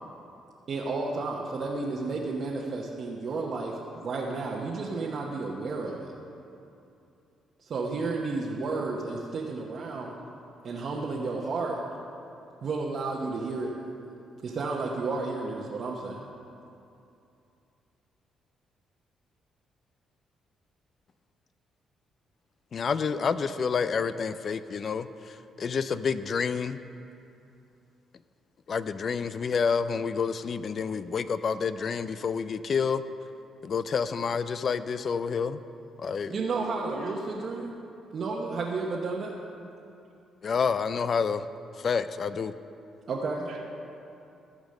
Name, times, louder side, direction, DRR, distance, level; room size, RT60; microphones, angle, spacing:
voice 1, 0.7-6.1 7.6-10.1 10.6-11.8 12.6-13.7 14.4-16.3 36.3-37.7 38.1-39.3 43.1-43.5, right 3 dB, 55° right, -3 dB, 1.0 m, -32 dB
voice 2, 22.7-26.8 28.7-33.0 33.6-35.6 36.0-36.3 40.4-41.5 41.8-42.5, left 6 dB, 50° left, 13 dB, 0.4 m, -29 dB
voice 3, 36.3-37.1 43.5-43.7, right 5 dB, 80° right, 1 dB, 1.1 m, -42 dB
14.0 x 5.2 x 6.5 m, 2.7 s
cardioid pair, 90°, 0 cm